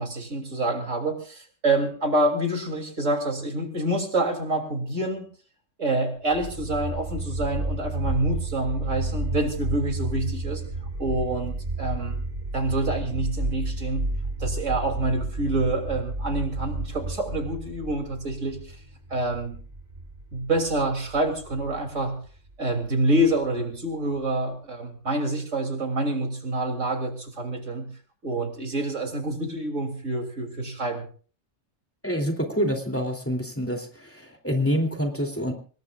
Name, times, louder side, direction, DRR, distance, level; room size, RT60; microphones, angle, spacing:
voice 1, 0.0-5.3 5.8-10.6 11.0-12.2 12.5-14.1 14.4-18.8 19.1-19.6 20.3-22.2 22.6-27.9 28.2-31.0, right 2 dB, 80° right, 4 dB, 3.5 m, -27 dB
sound 1, 6.3-23.3, right 2 dB, 35° right, 3.7 m, -32 dB
voice 2, 32.0-35.5, equal, 10° left, 2 dB, 3.0 m, -27 dB
25.5 x 20.0 x 2.5 m, 0.40 s
omnidirectional pair, 1.3 m